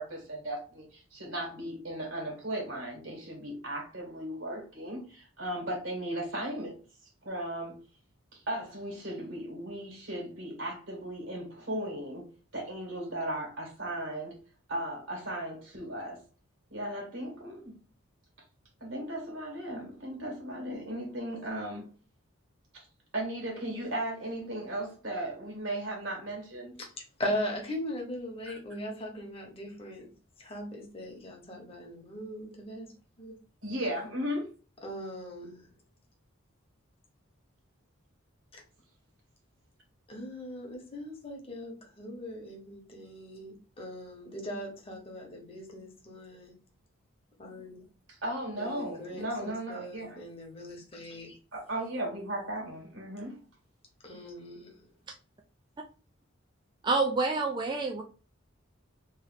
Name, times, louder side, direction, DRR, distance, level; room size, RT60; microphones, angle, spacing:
voice 1, 0.0-6.8 7.2-7.8 8.3-14.4 14.7-16.2 16.7-17.7 18.8-21.9 22.7-22.8 23.1-26.7 28.5-28.6 33.6-34.5 48.1-50.2 51.5-53.4, right 1 dB, 70° right, 1.7 m, -36 dB
voice 2, 27.2-30.1 30.4-32.9 33.2-33.3 34.8-35.7 38.5-38.6 40.1-46.5 47.4-47.8 48.6-51.4 54.0-54.8, equal, 30° left, 1.1 m, -39 dB
voice 3, 56.8-58.0, right 3 dB, 20° right, 0.3 m, -27 dB
3.2 x 2.7 x 3.9 m
head